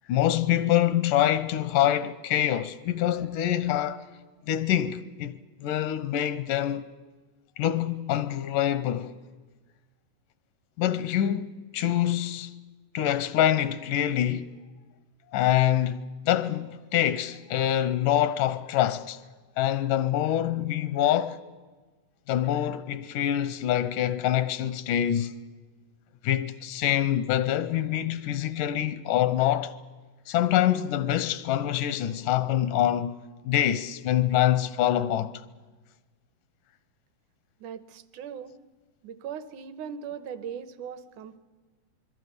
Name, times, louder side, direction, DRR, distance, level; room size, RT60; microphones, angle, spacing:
voice 1, 0.1-4.1 4.5-6.9 7.6-9.1 10.8-12.5 12.9-14.5 15.3-19.2 19.6-21.4 22.3-25.4 26.2-29.8 30.3-33.1 33.5-35.3, left 11 dB, 80° left, 2.4 m, -25 dB
voice 2, 37.6-38.6 39.0-41.4, right 7 dB, 75° right, 2.3 m, -39 dB
26.0 x 22.0 x 6.8 m
omnidirectional pair, 3.8 m